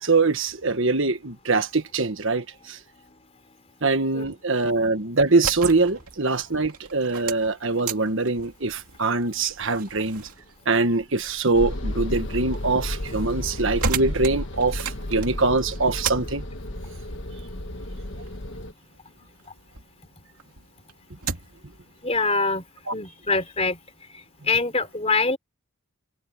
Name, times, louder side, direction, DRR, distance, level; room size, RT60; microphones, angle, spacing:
voice 1, 0.0-2.8 3.8-10.2 10.6-16.4 22.9-23.0, right 3 dB, 55° right, 1.5 m, -23 dB
sound 1, 5.2-19.9 20.3-21.7, right 5 dB, 85° right, 2.5 m, -36 dB
sound 2, 11.5-18.7, left 1 dB, 55° left, 1.6 m, -32 dB
voice 2, 22.0-22.6 22.9-23.8 24.1-25.4, left 3 dB, 25° left, 3.9 m, -24 dB
head